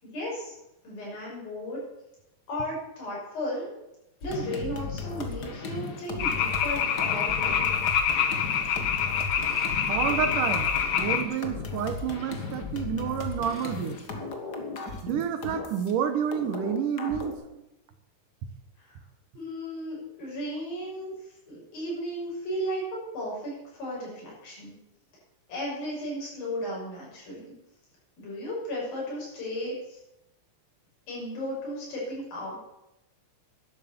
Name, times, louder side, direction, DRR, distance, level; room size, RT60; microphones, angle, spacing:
voice 1, 0.0-0.5 0.8-1.8 2.5-3.7 4.2-7.7 18.8-19.0 19.4-24.8 25.5-27.5 28.2-30.0 31.1-32.6, equal, 90° left, -5 dB, 8.5 m, -35 dB
sound 1, 4.2-15.9 16.3-17.3, left 4 dB, 45° left, 1.4 m, -36 dB
sound 2, 6.2-11.2, left 7 dB, 70° left, 1.4 m, -26 dB
voice 2, 9.9-14.0 15.0-17.4, right 8 dB, 70° right, 9 dB, 2.5 m, -29 dB
12.0 x 11.0 x 7.2 m, 0.89 s
omnidirectional pair, 4.0 m